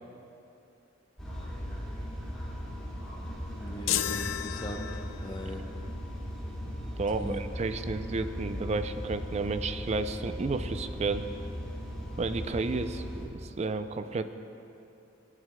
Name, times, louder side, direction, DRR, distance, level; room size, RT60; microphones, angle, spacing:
sound 1, 1.2-13.2, equal, 5° left, 1.9 m, -38 dB
voice 1, 3.6-5.6 7.2-7.4, equal, 25° left, 1 dB, 0.7 m, -40 dB
sound 2, 3.9-5.4, left 11 dB, 80° left, 0.4 m, -32 dB
voice 2, 7.0-11.2 12.2-14.2, right 3 dB, 35° right, 10 dB, 0.3 m, -32 dB
15.5 x 9.1 x 2.2 m, 2.8 s
head